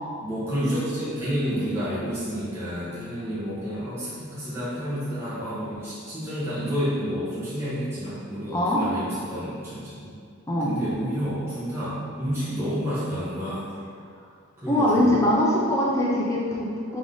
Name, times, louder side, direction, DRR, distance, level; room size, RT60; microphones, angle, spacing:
voice 1, 0.2-10.1 10.6-13.7 14.6-15.2, equal, 10° right, -13 dB, 1.2 m, -30 dB
voice 2, 8.5-8.8 10.5-10.7 14.7-17.0, left 1 dB, 15° left, -5 dB, 0.5 m, -22 dB
3.7 x 3.6 x 3.8 m, 2.3 s
head